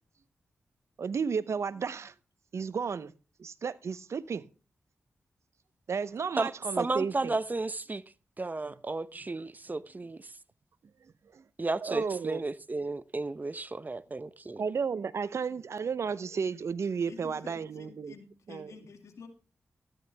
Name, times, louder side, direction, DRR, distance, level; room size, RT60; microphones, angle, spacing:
voice 1, 1.0-2.1 2.5-3.1 3.4-4.4 5.9-7.4 11.3-11.4 11.8-12.4 14.6-18.1 18.5-18.7, right 6 dB, 70° right, 0.7 m, -33 dB
voice 2, 6.8-8.0 8.4-10.3 11.6-14.6, right 3 dB, 35° right, 0.8 m, -33 dB
voice 3, 17.1-19.3, left 5 dB, 80° left, 2.3 m, -50 dB
13.5 x 9.9 x 3.4 m
cardioid pair, 45°, 5 cm